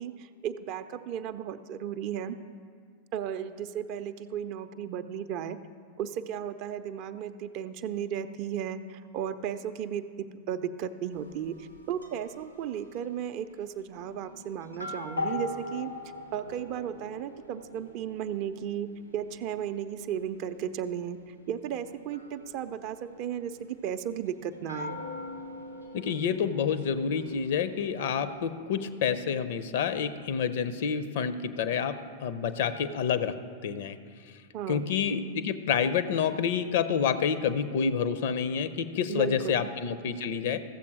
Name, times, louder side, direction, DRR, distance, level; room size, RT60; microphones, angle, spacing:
voice 1, 0.0-2.4 3.1-5.6 6.0-15.9 16.3-25.0 34.5-34.8 39.1-39.7, right 9 dB, 45° right, 10 dB, 0.4 m, -35 dB
sound 1, 11.1-13.0 13.9-28.5, left 2 dB, 85° left, 1.1 m, -43 dB
voice 2, 25.9-33.4 33.6-34.0 34.7-40.6, left 7 dB, 55° left, 12 dB, 0.5 m, -28 dB
14.5 x 7.1 x 4.7 m, 2.1 s
figure-of-eight pair, 90°, 0 cm